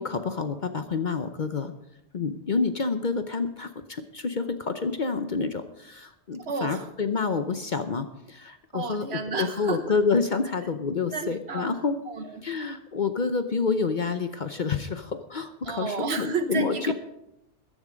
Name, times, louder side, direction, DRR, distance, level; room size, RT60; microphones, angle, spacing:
voice 1, 0.0-1.7 2.1-9.1 9.4-12.0 12.4-16.9, left 4 dB, 45° left, 9 dB, 0.8 m, -28 dB
voice 2, 6.4-6.9 8.7-9.8 11.0-11.7 12.1-12.5 15.6-16.9, right 4 dB, 60° right, 8 dB, 1.4 m, -31 dB
14.5 x 10.5 x 5.1 m, 0.82 s
omnidirectional pair, 1.3 m